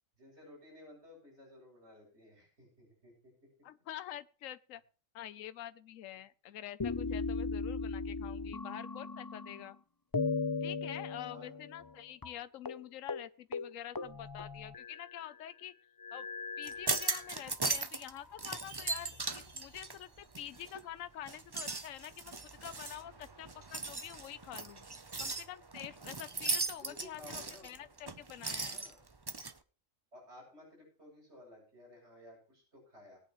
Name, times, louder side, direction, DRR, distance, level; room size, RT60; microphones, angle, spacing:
voice 1, 0.2-3.3 11.3-11.5 26.8-27.9 28.6-29.0 30.1-33.2, left 1 dB, 55° right, 8.0 m, -55 dB
voice 2, 3.6-4.8 5.1-9.8 10.6-15.7 16.1-16.3 16.6-22.3 22.6-24.8 25.2-28.8, left 11 dB, 80° left, 1.1 m, -47 dB
sound 1, 6.8-9.7 10.1-12.0 12.2-12.3 12.6-12.8 13.1-13.3 13.5-15.2 16.0-17.6 18.3-19.2, left 4 dB, 30° left, 0.4 m, -38 dB
sound 2, 16.6-18.1 18.4-20.8 21.2-29.5, right 3 dB, 25° right, 0.7 m, -38 dB
Chime, 18.4-20.9, right 4 dB, 85° right, 2.3 m, -58 dB
21.5 x 9.1 x 3.1 m
omnidirectional pair, 1.4 m